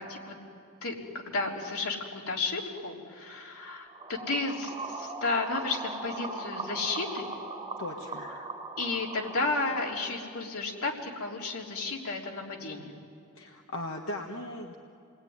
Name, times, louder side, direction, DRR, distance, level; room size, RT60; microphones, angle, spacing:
voice 1, 0.8-7.3 8.2-8.5 8.8-12.9, left 3 dB, 85° left, -1 dB, 3.6 m, -33 dB
sound 1, 3.9-9.9, right 3 dB, 25° right, 4.6 m, -39 dB
voice 2, 7.8-8.3 13.3-14.7, left 1 dB, 60° left, 1 dB, 1.6 m, -38 dB
29.0 x 21.0 x 9.7 m, 2.4 s
head